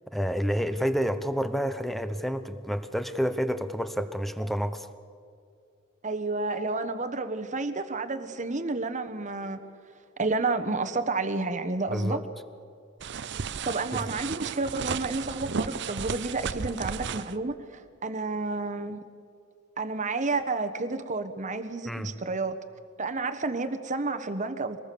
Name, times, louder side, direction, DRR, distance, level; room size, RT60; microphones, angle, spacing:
voice 1, 0.1-4.9 11.9-12.2 13.9-14.0 21.9-22.1, equal, ahead, 11 dB, 0.9 m, -29 dB
voice 2, 6.0-9.6 10.2-12.2 13.6-19.0 19.8-22.6 23.0-24.8, right 3 dB, 40° right, 10 dB, 1.2 m, -30 dB
sound 1, 13.0-17.3, right 6 dB, 60° right, 0.6 m, -34 dB
24.5 x 20.0 x 6.9 m, 2.4 s
head